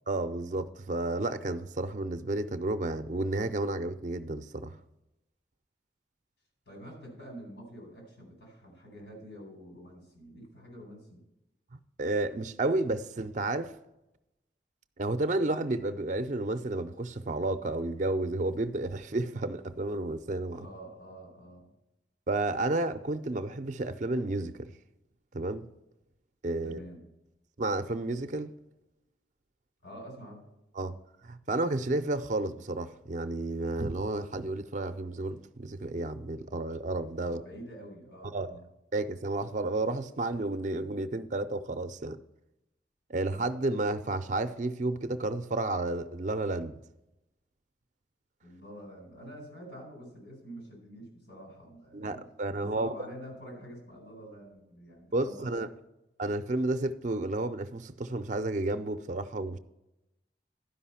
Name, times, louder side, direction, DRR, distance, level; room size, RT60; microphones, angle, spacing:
voice 1, 0.1-4.7 12.0-13.7 15.0-20.7 22.3-24.7 25.3-25.7 26.4-26.8 27.6-28.5 30.8-30.9 31.2-37.4 38.3-38.5 38.9-42.2 43.1-46.8 51.9-52.9 55.1-55.7 56.2-59.6, right 2 dB, 45° right, 0.5 m, -31 dB
voice 2, 6.7-11.2 20.5-21.7 26.6-27.0 29.8-30.5 37.3-38.7 48.4-55.7, equal, 85° left, 4.3 m, -47 dB
11.5 x 5.4 x 5.7 m
head